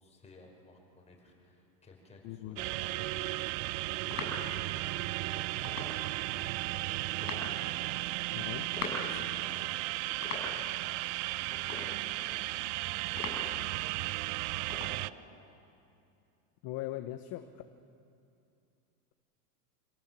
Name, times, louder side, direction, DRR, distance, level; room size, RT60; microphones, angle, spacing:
voice 1, 0.0-14.4, left 2 dB, 15° left, -1 dB, 5.3 m, -57 dB
voice 2, 2.2-2.7 8.3-8.7 16.6-17.6, left 14 dB, 45° left, 8 dB, 1.1 m, -40 dB
sound 1, 2.6-15.1, right 20 dB, 50° right, 0.5 m, -35 dB
sound 2, 3.2-15.0, left 3 dB, 30° left, 7.5 m, -44 dB
27.0 x 17.0 x 7.5 m, 2.6 s
hypercardioid pair, 110°, 48 cm